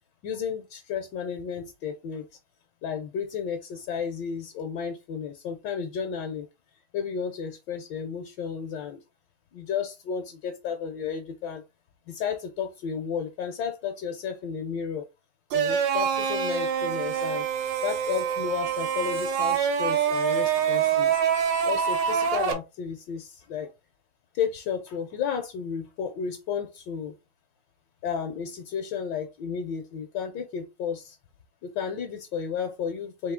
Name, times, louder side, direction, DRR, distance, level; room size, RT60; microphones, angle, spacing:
voice 1, 0.2-2.2 2.8-6.5 6.9-9.0 9.5-11.6 12.1-15.0 15.5-17.4 17.8-21.2 21.6-23.7 24.3-27.1 28.0-31.2 31.6-33.3, left 7 dB, 75° left, 1.4 m, -32 dB
sound 1, 15.5-22.5, right 7 dB, 80° right, 1.5 m, -25 dB
4.3 x 2.7 x 3.6 m
omnidirectional pair, 2.0 m